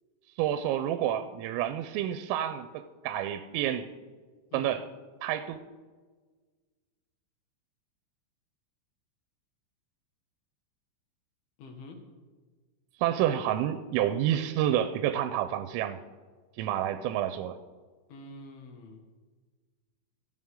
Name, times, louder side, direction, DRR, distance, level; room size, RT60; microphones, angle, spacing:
voice 1, 0.4-3.9 4.5-4.8 5.2-5.6 13.0-16.0 16.6-17.6, right 11 dB, 90° right, 10 dB, 3.3 m, -29 dB
voice 2, 11.6-12.0 18.1-19.0, left 2 dB, 60° left, 3 dB, 3.1 m, -46 dB
27.0 x 9.0 x 3.8 m, 1.4 s
omnidirectional pair, 5.8 m